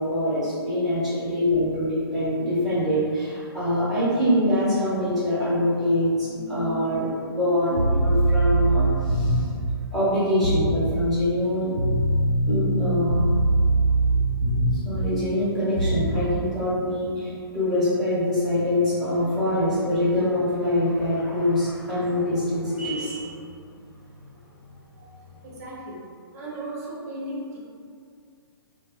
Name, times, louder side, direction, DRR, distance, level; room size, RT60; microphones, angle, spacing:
voice 1, 0.0-9.5 9.9-11.7 12.5-13.3 14.7-23.4 24.2-24.3 25.0-25.1, left 1 dB, ahead, -13 dB, 1.1 m, -24 dB
sound 1, 7.7-9.6 10.4-10.8 11.8-15.0 15.8-16.2, right 2 dB, 85° right, 0.5 m, -22 dB
voice 2, 25.4-26.0 26.3-27.6, right 1 dB, 40° right, -4 dB, 0.6 m, -35 dB
2.5 x 2.2 x 2.3 m, 2.2 s
figure-of-eight pair, 120°, 13 cm